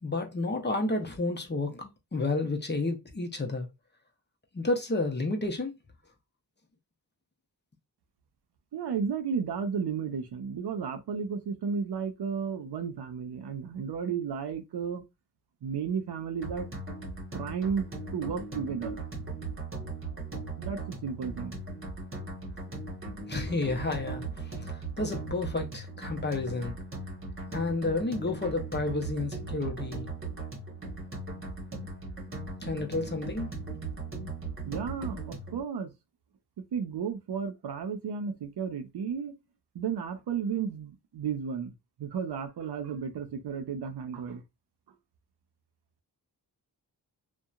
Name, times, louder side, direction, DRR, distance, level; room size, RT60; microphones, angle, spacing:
voice 1, 0.0-3.7 4.5-5.7 23.3-26.7 27.5-30.1 32.6-33.5, left 2 dB, 25° left, 0.7 m, -31 dB
voice 2, 8.7-15.0 15.6-16.7 17.3-19.0 20.6-21.6 34.7-35.9 36.6-39.4 39.7-41.7 42.0-44.4, right 6 dB, 65° right, 0.6 m, -33 dB
sound 1, 16.4-35.6, right 3 dB, 30° right, 1.1 m, -38 dB
2.7 x 2.2 x 2.4 m
cardioid pair, 75°, 42 cm